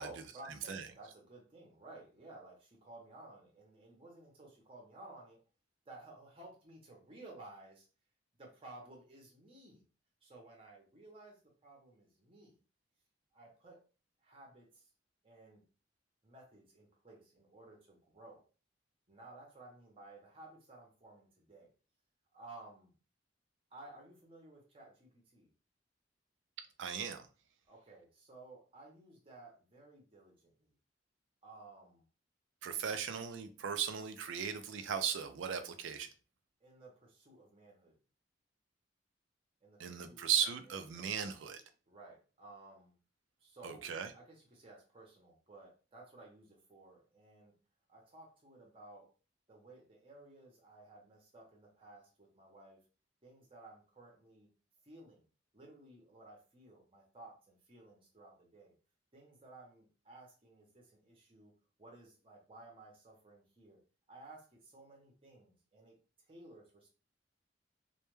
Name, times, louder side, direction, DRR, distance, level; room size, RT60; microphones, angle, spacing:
voice 1, 0.0-5.4 5.9-7.9 8.4-9.8 10.2-12.6 13.3-13.8 14.2-14.8 15.2-15.6 16.2-18.4 19.1-21.7 22.3-22.9 23.7-25.5 27.7-30.7 31.4-32.0 36.6-37.9 39.6-41.1 41.9-42.9 43.4-47.5 47.9-49.1 49.5-52.8 53.2-54.5 54.8-55.2 55.5-58.7 59.1-61.5 61.8-63.8 64.1-66.0 66.3-66.9, right 2 dB, 30° right, -1 dB, 0.7 m, -56 dB
voice 2, 26.8-27.3 32.6-36.1 39.8-41.6 43.6-44.1, right 8 dB, 90° right, 9 dB, 0.4 m, -37 dB
2.1 x 2.1 x 3.0 m, 0.35 s
head